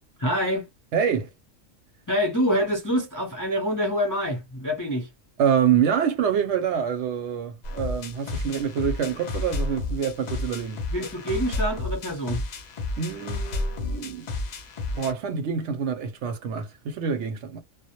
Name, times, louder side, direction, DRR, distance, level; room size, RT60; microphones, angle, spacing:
voice 1, 0.2-0.7 2.1-5.1 10.9-12.4, equal, 25° left, 0.4 m, -26 dB
voice 2, 0.9-1.3 5.4-10.8 13.0-14.3 14.9-17.6, right 8 dB, 65° right, 0.8 m, -26 dB
sound 1, 7.6-15.1, left 2 dB, 80° left, 0.3 m, -31 dB
2.1 x 2.1 x 2.8 m
omnidirectional pair, 1.4 m